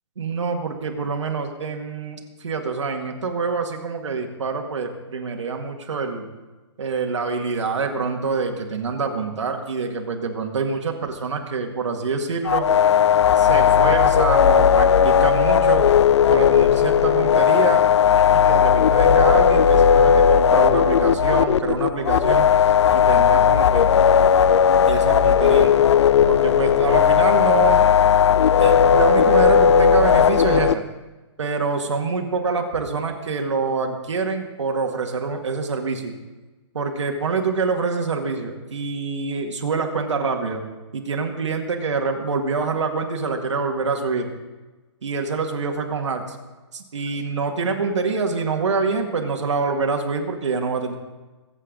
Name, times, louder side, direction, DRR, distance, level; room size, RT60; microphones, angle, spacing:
voice 1, 0.2-6.3 6.8-12.7 13.3-15.9 16.3-17.8 18.3-24.0 24.8-25.7 26.3-27.9 28.6-30.8 31.4-36.2 36.7-40.6 40.9-44.3 45.0-46.2 46.7-51.0, right 4 dB, 85° right, 3 dB, 2.1 m, -26 dB
sound 1, 12.4-30.7, left 8 dB, 75° left, 0.4 m, -16 dB
22.5 x 8.3 x 3.9 m, 1.2 s
hypercardioid pair, 175°, 15 cm